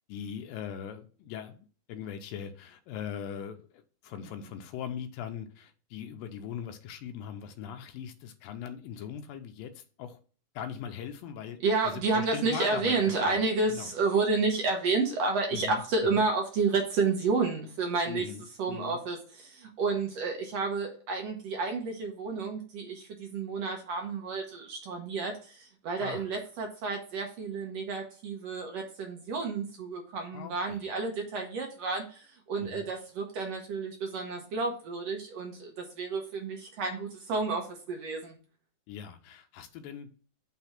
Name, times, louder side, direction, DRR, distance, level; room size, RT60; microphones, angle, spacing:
voice 1, 0.1-1.6 1.9-10.2 10.6-11.6 11.8-13.4 13.7-13.9 15.5-16.2 18.1-19.0 26.0-26.3 30.3-30.8 32.6-32.9 38.9-40.1, left 8 dB, 85° left, 2.4 m, -40 dB
voice 2, 11.6-18.3 18.6-38.3, right 4 dB, 70° right, 1.6 m, -30 dB
5.9 x 3.4 x 5.7 m
omnidirectional pair, 4.0 m